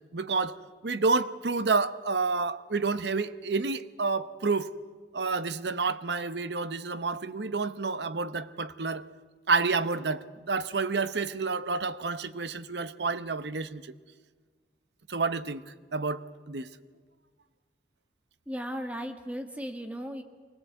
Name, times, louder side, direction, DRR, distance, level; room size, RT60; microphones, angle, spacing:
voice 1, 0.1-0.6 0.8-4.7 5.1-9.0 9.5-13.9 15.1-16.7, right 4 dB, 80° right, 0.9 m, -29 dB
voice 2, 18.5-20.2, equal, 10° right, 1.6 m, -36 dB
24.0 x 18.5 x 8.2 m
head